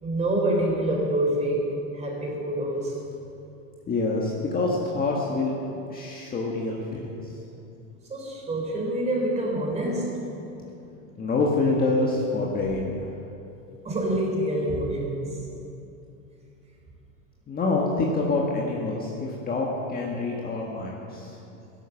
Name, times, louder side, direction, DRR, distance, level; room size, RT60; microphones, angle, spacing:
voice 1, 0.0-2.9 8.1-10.3 13.8-15.5, right 1 dB, 15° right, 0 dB, 3.8 m, -26 dB
voice 2, 3.9-5.5 5.9-7.1 11.2-13.1 17.5-21.4, left 3 dB, 20° left, -2 dB, 1.7 m, -26 dB
15.5 x 12.0 x 7.3 m, 2.8 s
supercardioid pair, 140°, 42 cm